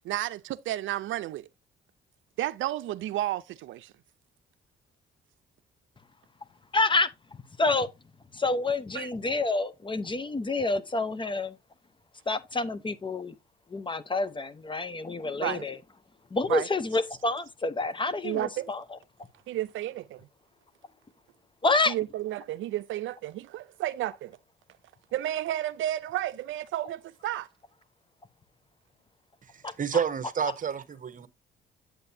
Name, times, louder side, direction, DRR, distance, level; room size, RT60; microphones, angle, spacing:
voice 1, 0.1-1.4 2.4-3.8 9.0-9.1 15.4-15.6 16.5-16.6 18.2-18.7 19.5-20.2 21.9-24.3 25.1-27.5, right 13 dB, 75° right, 0.5 m, -32 dB
voice 2, 6.7-7.1 7.6-7.9 8.3-11.6 12.3-13.3 13.7-15.8 16.3-19.0 21.6-21.9 29.6-29.7, left 3 dB, 25° left, 0.8 m, -28 dB
voice 3, 29.8-31.3, right 7 dB, 40° right, 1.1 m, -29 dB
8.2 x 7.7 x 2.7 m
cardioid pair, 90°, 20 cm